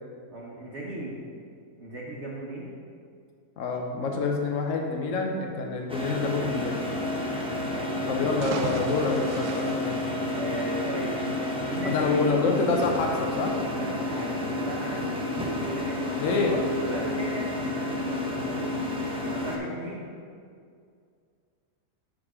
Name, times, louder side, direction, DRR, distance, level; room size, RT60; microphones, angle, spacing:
voice 1, 0.3-1.2 1.8-2.7 7.6-8.7 10.3-11.2 11.6-12.3 13.7-15.1 15.7-18.8 19.3-20.1, right 2 dB, 50° right, -5 dB, 1.1 m, -37 dB
voice 2, 3.6-6.9 8.1-10.0 11.8-13.5 16.1-16.6, left 3 dB, 60° left, 2 dB, 1.2 m, -27 dB
sound 1, 5.9-19.6, left 2 dB, 5° right, 0.5 m, -30 dB
sound 2, 8.4-10.8, right 5 dB, 80° right, 1.2 m, -38 dB
7.3 x 5.1 x 4.9 m, 2.2 s
omnidirectional pair, 1.6 m